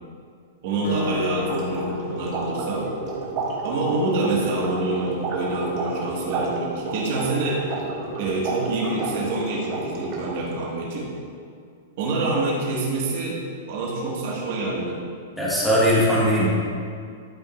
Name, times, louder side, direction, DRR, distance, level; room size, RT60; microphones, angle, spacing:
voice 1, 0.6-2.9 3.6-7.6 8.2-11.1 12.0-13.4 13.7-15.0, right 2 dB, 50° right, -3 dB, 1.8 m, -26 dB
Acoustic guitar, 0.8-3.6, left 4 dB, 70° left, 1.5 m, -32 dB
sound 1, 1.1-10.5, right 3 dB, 35° right, 1.5 m, -31 dB
voice 2, 15.4-16.5, equal, ahead, -8 dB, 1.5 m, -19 dB
12.0 x 5.2 x 2.6 m, 2.2 s
supercardioid pair, 155°, 0 cm